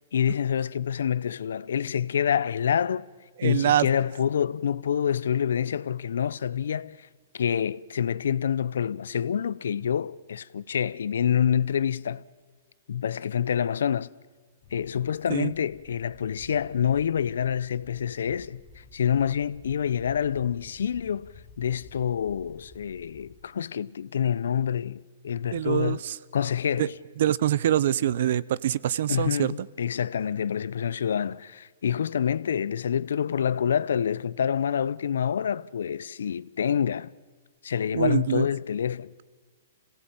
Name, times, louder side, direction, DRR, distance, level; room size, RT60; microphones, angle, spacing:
voice 1, 0.1-3.1 3.4-7.1 7.3-12.2 12.9-14.1 14.7-26.0 26.3-27.0 29.1-37.1 37.6-39.1, left 8 dB, 80° left, 0.6 m, -27 dB
voice 2, 3.4-3.9 15.3-15.5 25.5-26.1 26.8-26.9 27.2-29.5 37.9-38.4, right 11 dB, 60° right, 0.7 m, -24 dB
sound 1, 14.6-23.4, left 4 dB, 35° left, 2.4 m, -52 dB
26.5 x 17.5 x 9.0 m
hypercardioid pair, 155°, 0 cm